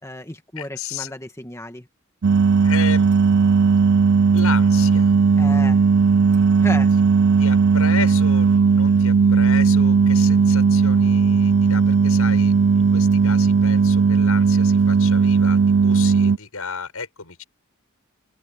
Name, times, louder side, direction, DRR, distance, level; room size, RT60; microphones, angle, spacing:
voice 1, 0.0-1.9 5.4-5.8 6.6-6.9, left 1 dB, 15° left, 1.6 m, -33 dB
voice 2, 0.6-1.1 2.6-3.1 4.3-5.1 7.4-17.4, left 6 dB, 90° left, 7.6 m, -33 dB
sound 1, 2.2-16.4, right 5 dB, 55° right, 0.5 m, -16 dB
open air
head